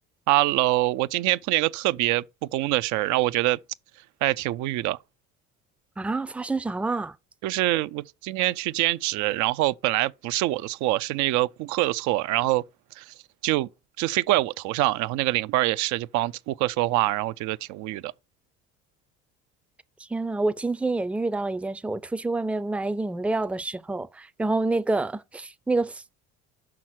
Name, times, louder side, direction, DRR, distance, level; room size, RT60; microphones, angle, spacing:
voice 1, 0.3-2.2 2.5-3.6 4.2-5.0 7.4-12.6 13.0-13.1 13.4-13.7 14.0-18.1, right 17 dB, 70° right, 0.5 m, -25 dB
voice 2, 6.0-7.1 20.1-26.2, right 2 dB, 5° right, 0.5 m, -27 dB
5.9 x 5.6 x 6.2 m
supercardioid pair, 85°, 30 cm